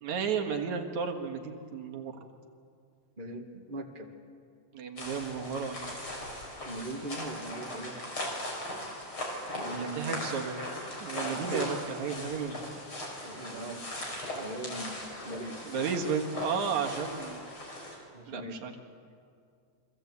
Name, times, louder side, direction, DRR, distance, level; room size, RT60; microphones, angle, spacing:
voice 1, 0.0-2.2 4.7-6.1 9.7-10.7 11.0-12.8 15.6-17.5 18.3-18.7, right 6 dB, 75° right, 3 dB, 3.0 m, -33 dB
voice 2, 3.2-4.1 6.6-8.1 9.5-10.1 11.2-11.7 13.2-13.8 14.3-15.0 15.2-15.7 18.1-18.6, right 2 dB, 20° right, 2 dB, 1.8 m, -40 dB
sound 1, 5.0-18.0, left 1 dB, 45° left, 6.2 m, -39 dB
29.0 x 23.0 x 8.4 m, 2.3 s
omnidirectional pair, 3.3 m